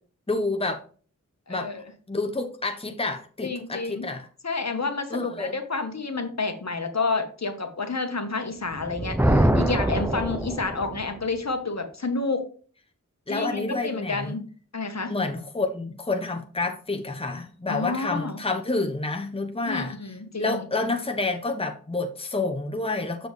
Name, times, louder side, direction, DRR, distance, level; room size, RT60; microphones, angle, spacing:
voice 1, 0.3-0.8 1.5-1.7 2.1-4.3 5.1-5.6 13.3-14.4 15.1-20.0 20.4-23.3, left 3 dB, 15° left, 1.0 m, -29 dB
voice 2, 1.5-1.8 3.4-4.0 4.4-12.5 13.3-14.4 14.7-15.1 17.7-18.4 19.7-20.7, left 3 dB, 55° left, 1.3 m, -29 dB
Thunder, 8.7-11.1, right 1 dB, 5° right, 0.5 m, -23 dB
6.9 x 6.2 x 3.2 m
wide cardioid pair, 45°, 32 cm